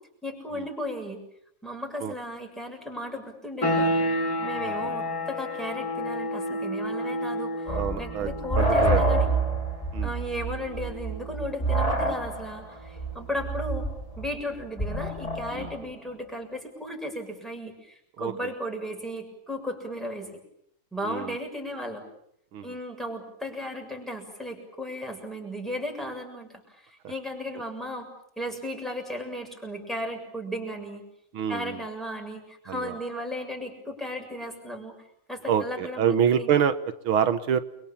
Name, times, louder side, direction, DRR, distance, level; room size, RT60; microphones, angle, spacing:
voice 1, 0.2-1.2 1.6-4.0 4.4-9.3 10.0-13.9 14.2-20.4 20.9-22.0 22.6-28.1 28.4-31.0 31.5-34.9 35.3-36.5, equal, ahead, 2 dB, 7.0 m, -35 dB
sound 1, 3.6-14.1, left 1 dB, 50° left, 5.1 m, -32 dB
sound 2, 7.7-15.8, right 2 dB, 20° left, 2.8 m, -27 dB
voice 2, 7.7-8.3 8.6-9.3 9.9-10.1 15.5-15.7 18.2-18.3 21.0-21.4 22.5-22.7 31.3-31.8 32.7-33.0 35.5-37.6, right 8 dB, 90° right, 11 dB, 2.1 m, -26 dB
29.5 x 24.0 x 7.4 m, 0.74 s
omnidirectional pair, 2.2 m